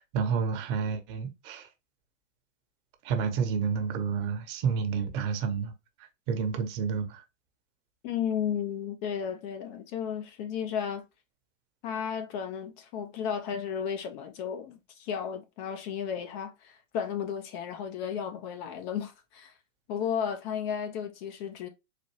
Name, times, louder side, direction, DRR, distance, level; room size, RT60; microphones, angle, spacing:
voice 1, 0.0-1.7 3.0-5.7 6.3-7.2, right 6 dB, 45° right, 1.0 m, -30 dB
voice 2, 8.0-11.0 11.8-19.5 19.9-21.7, left 8 dB, 35° left, 0.5 m, -33 dB
4.1 x 2.6 x 3.0 m
hypercardioid pair, 120°, 40 cm